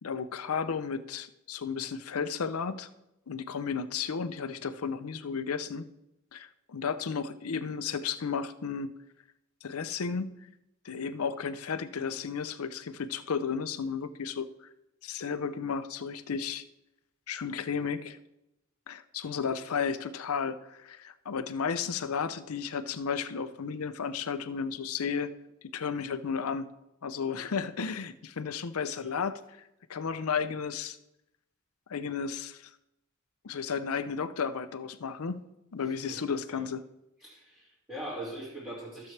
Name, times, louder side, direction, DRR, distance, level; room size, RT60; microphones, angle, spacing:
voice 1, 0.0-2.9 3.3-5.9 6.3-8.9 9.6-10.3 10.8-14.5 15.0-16.6 17.3-18.2 18.9-25.3 25.7-26.7 27.0-29.4 29.9-31.0 31.9-32.7 33.4-35.5 35.7-36.8, left 6 dB, 75° left, 13 dB, 0.6 m, -33 dB
voice 2, 36.0-36.6 37.2-39.1, right 1 dB, 10° right, -9 dB, 2.4 m, -42 dB
14.5 x 7.0 x 3.3 m, 0.90 s
head